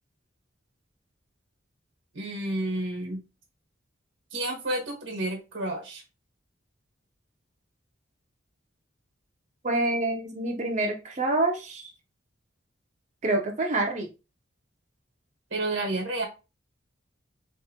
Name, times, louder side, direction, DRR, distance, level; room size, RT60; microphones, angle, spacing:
voice 1, 2.1-3.2 4.3-6.0 15.5-16.3, right 1 dB, 80° right, 1 dB, 1.2 m, -30 dB
voice 2, 9.6-11.9 13.2-14.1, right 2 dB, 35° right, 2 dB, 0.6 m, -27 dB
3.6 x 2.6 x 2.7 m, 0.30 s
head